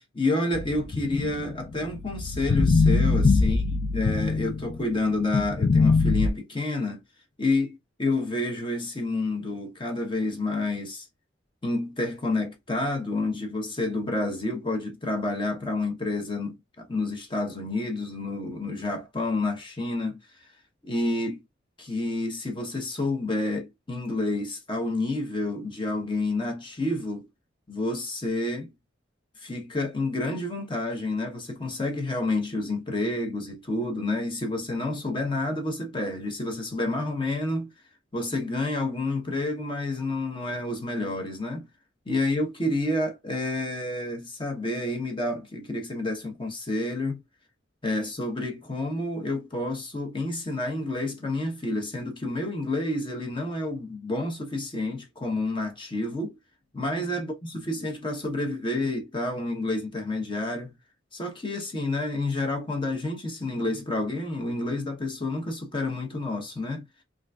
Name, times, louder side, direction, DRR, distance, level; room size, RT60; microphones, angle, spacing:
voice 1, 0.1-3.6 3.9-7.0 7.4-11.1 11.6-20.5 20.8-21.4 21.8-27.2 27.7-28.7 29.4-37.7 38.1-41.7 42.1-47.2 47.8-56.3 56.7-60.8 61.1-66.8, left 2 dB, 25° left, 1.0 m, -29 dB
sound 1, 0.5-4.9 5.3-6.3, left 3 dB, 45° left, 0.4 m, -23 dB
3.8 x 2.5 x 2.3 m
head